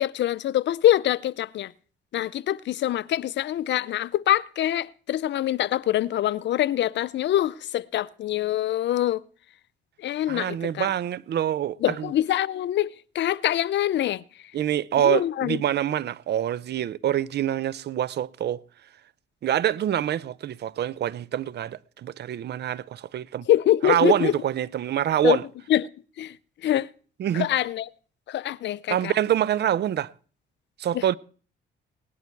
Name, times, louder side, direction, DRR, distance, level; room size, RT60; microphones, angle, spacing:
voice 1, 0.0-1.7 2.1-9.2 10.0-10.9 11.8-14.2 15.0-15.6 23.5-24.3 25.2-25.4 25.7-25.9 26.2-26.3 26.6-26.9 27.3-27.9 28.3-29.1 30.9-31.0, left 12 dB, 65° left, 0.5 m, -24 dB
voice 2, 10.3-12.1 14.5-18.6 19.4-23.5 23.8-25.4 27.2-27.5 28.9-30.1 30.8-31.1, right 11 dB, 60° right, 0.6 m, -25 dB
18.0 x 11.0 x 4.6 m
cardioid pair, 90°, 20 cm